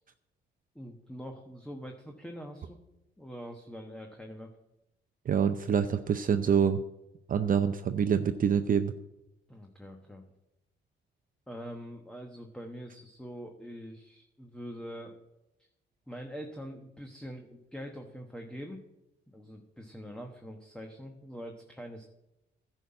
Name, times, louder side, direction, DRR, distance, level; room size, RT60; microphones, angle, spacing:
voice 1, 0.7-2.8 3.2-4.5 9.5-10.2 11.5-15.2 16.1-18.8 19.3-22.1, equal, 5° left, 3 dB, 1.1 m, -44 dB
voice 2, 5.3-6.8 7.3-8.9, right 7 dB, 45° right, 9 dB, 0.6 m, -26 dB
11.0 x 5.7 x 8.8 m, 0.91 s
cardioid pair, 90°, 20 cm